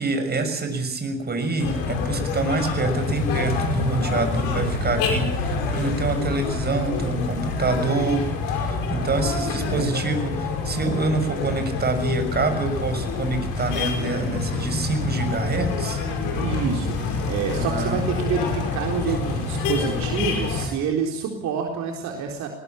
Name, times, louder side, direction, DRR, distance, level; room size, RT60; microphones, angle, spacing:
voice 1, 0.0-16.0 17.6-18.0 19.1-19.2, right 3 dB, 30° right, 7 dB, 6.3 m, -26 dB
sound 1, 1.6-20.7, left 4 dB, 75° left, 5.3 m, -26 dB
voice 2, 9.2-9.9 16.4-22.5, right 6 dB, 65° right, 2 dB, 4.0 m, -28 dB
20.5 x 19.0 x 8.8 m, 0.77 s
hypercardioid pair, 65°, 30 cm